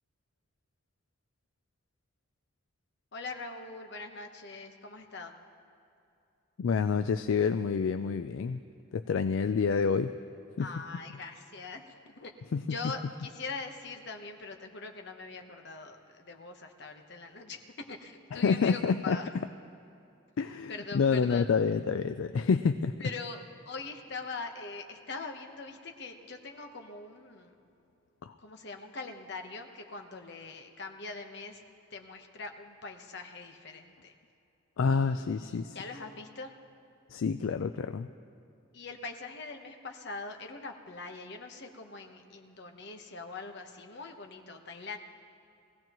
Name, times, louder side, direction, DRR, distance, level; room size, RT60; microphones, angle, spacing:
voice 1, 3.1-5.3 10.6-12.3 12.7-19.3 20.7-21.5 23.0-27.6 28.4-31.6 31.9-34.1 34.9-36.5 38.7-45.0, left 3 dB, 55° left, 4 dB, 1.1 m, -42 dB
voice 2, 6.6-8.6 8.9-10.1 10.6-10.7 12.5-12.6 18.3-19.2 20.4-23.1 28.2-28.3 34.8-35.8 37.1-38.1, left 5 dB, 75° left, 9 dB, 0.4 m, -28 dB
22.0 x 16.0 x 3.0 m, 2.7 s
head